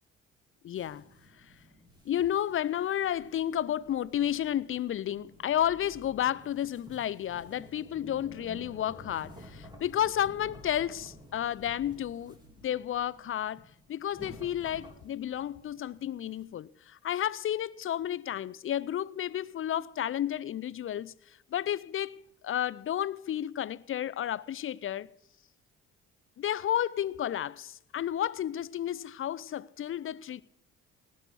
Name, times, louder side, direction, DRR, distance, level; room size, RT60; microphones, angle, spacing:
voice 1, 0.6-1.0 2.1-12.3 12.6-13.6 13.9-21.1 21.5-25.1 26.4-30.4, left 11 dB, 45° left, 0.6 m, -32 dB
sound 1, 0.7-16.4, equal, 15° right, 3.7 m, -52 dB
18.5 x 6.3 x 6.9 m
supercardioid pair, 70°, 29 cm